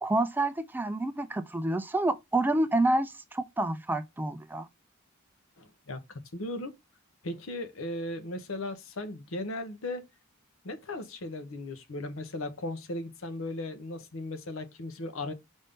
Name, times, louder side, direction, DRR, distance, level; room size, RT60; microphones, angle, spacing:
voice 1, 0.0-4.7, right 2 dB, 10° right, 0.3 m, -28 dB
voice 2, 5.6-6.0 6.3-6.8 7.2-10.1 10.6-15.3, left 2 dB, 80° left, 0.8 m, -37 dB
5.2 x 2.7 x 3.5 m
head